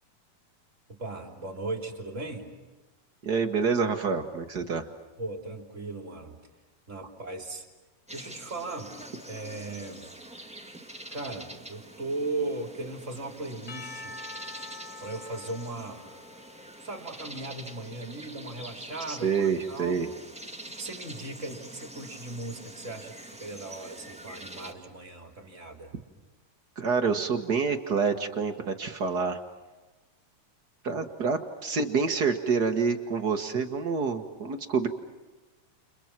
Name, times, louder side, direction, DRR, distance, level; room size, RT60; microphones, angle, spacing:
voice 1, 0.9-2.5 5.2-6.3 6.9-7.7 8.1-9.0 9.3-10.1 11.1-14.2 15.0-16.0 16.8-20.1 20.6-25.9, right 2 dB, 20° right, 4 dB, 3.2 m, -37 dB
voice 2, 3.2-4.8 19.1-20.1 26.8-29.4 30.8-34.9, right 5 dB, 50° right, 6 dB, 1.1 m, -27 dB
sound 1, 8.1-24.7, right 1 dB, 5° right, 0.8 m, -45 dB
Percussion / Church bell, 13.7-17.9, left 3 dB, 60° left, 1.1 m, -46 dB
30.0 x 29.5 x 6.0 m, 1.2 s
omnidirectional pair, 3.9 m